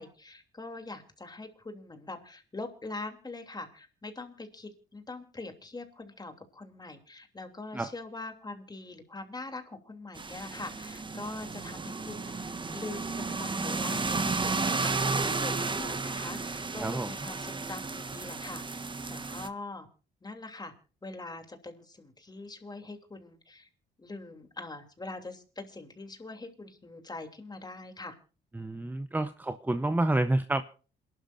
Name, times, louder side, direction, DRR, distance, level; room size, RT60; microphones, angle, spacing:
voice 1, 0.0-19.9 20.2-20.7 21.0-23.7 24.0-28.2, left 2 dB, 20° left, 6 dB, 3.0 m, -43 dB
sound 1, 10.1-19.5, right 3 dB, 25° right, 1.3 m, -33 dB
voice 2, 16.8-17.1 28.5-30.6, right 2 dB, 10° right, 11 dB, 0.8 m, -29 dB
27.5 x 12.0 x 2.6 m, 0.37 s
cardioid pair, 90°, 20 cm